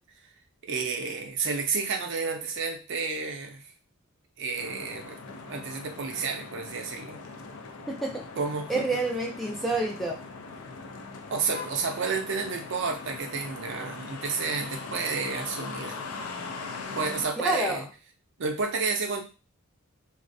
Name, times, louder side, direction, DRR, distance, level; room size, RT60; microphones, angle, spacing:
voice 1, 0.6-3.6 4.4-5.2 5.5-7.2 8.4-8.9 11.3-16.1 17.0-17.8 18.4-19.2, right 4 dB, 55° right, 4 dB, 0.5 m, -31 dB
sound 1, 4.6-17.3, left 4 dB, 75° left, 0.4 m, -40 dB
voice 2, 7.9-8.2 8.7-10.2 17.4-17.9, right 2 dB, ahead, -1 dB, 0.3 m, -28 dB
2.4 x 2.0 x 2.6 m, 0.32 s
head